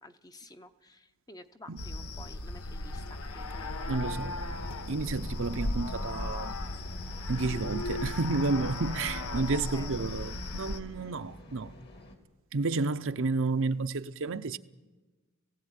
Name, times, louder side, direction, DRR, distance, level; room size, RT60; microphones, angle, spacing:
voice 1, 0.0-4.1 9.3-9.5 9.7-9.9, left 1 dB, 15° left, 0.8 m, -51 dB
sound 1, 1.8-10.8, left 2 dB, 75° left, 1.1 m, -36 dB
voice 2, 3.9-4.3 4.9-6.6 7.3-11.7 12.5-14.6, right 3 dB, 60° right, 0.7 m, -31 dB
sound 2, 4.5-12.2, left 1 dB, 50° left, 2.5 m, -49 dB
18.5 x 16.5 x 9.1 m
head